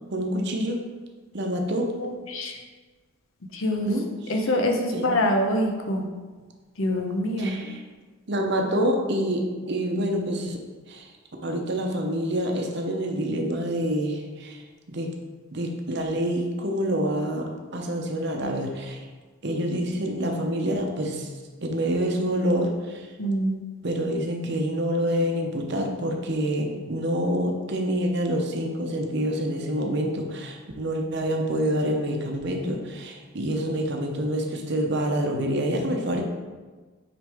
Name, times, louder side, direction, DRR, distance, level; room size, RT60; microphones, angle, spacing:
voice 1, 0.1-0.8 1.3-1.9 3.9-4.1 4.9-5.0 7.4-7.8 8.3-10.6 10.9-11.1 11.4-14.6 14.9-15.1 15.5-19.0 19.4-21.3 21.6-23.1 23.8-36.2, equal, 55° right, 2 dB, 0.8 m, -27 dB
voice 2, 2.0-2.6 3.5-3.9 4.3-6.1 6.8-7.6 23.2-23.5, left 1 dB, 70° left, 3 dB, 0.8 m, -25 dB
6.1 x 5.0 x 3.5 m, 1.3 s
head